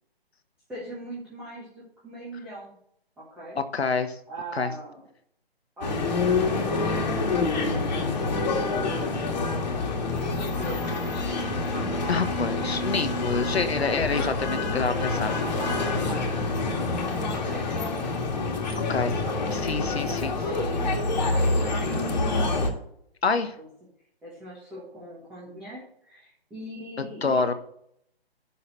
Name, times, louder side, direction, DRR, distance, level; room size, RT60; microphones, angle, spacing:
voice 1, 0.7-2.8 3.2-3.6 4.3-5.1 5.8-9.0 10.0-10.9 11.8-12.8 14.1-14.2 14.5-17.6 19.2-22.5 23.6-23.7 24.2-27.5, equal, 5° right, -9 dB, 1.5 m, -41 dB
voice 2, 3.7-4.1 4.5-4.7 12.1-14.9 15.2-15.4 18.9-19.1 19.6-20.3 23.2-23.5 27.2-27.5, left 4 dB, 85° left, 9 dB, 1.4 m, -26 dB
sound 1, 5.8-22.7, left 3 dB, 45° left, 2.1 m, -27 dB
11.5 x 4.1 x 7.9 m, 0.70 s
hypercardioid pair, 160°, 31 cm